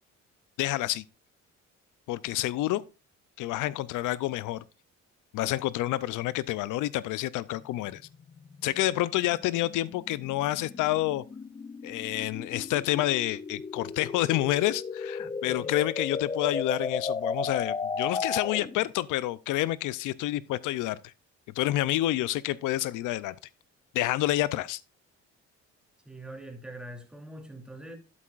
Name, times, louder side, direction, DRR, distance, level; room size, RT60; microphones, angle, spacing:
voice 1, 0.6-1.0 2.1-2.8 3.4-4.6 5.3-8.0 8.6-11.2 11.8-21.1 21.6-23.3 23.9-24.8, left 15 dB, 85° left, 0.5 m, -28 dB
sound 1, 7.6-18.9, left 5 dB, 20° left, 0.4 m, -35 dB
voice 2, 15.2-15.7 26.0-28.0, right 1 dB, 5° right, 2.7 m, -44 dB
12.0 x 8.4 x 2.4 m
cardioid pair, 90°, 30 cm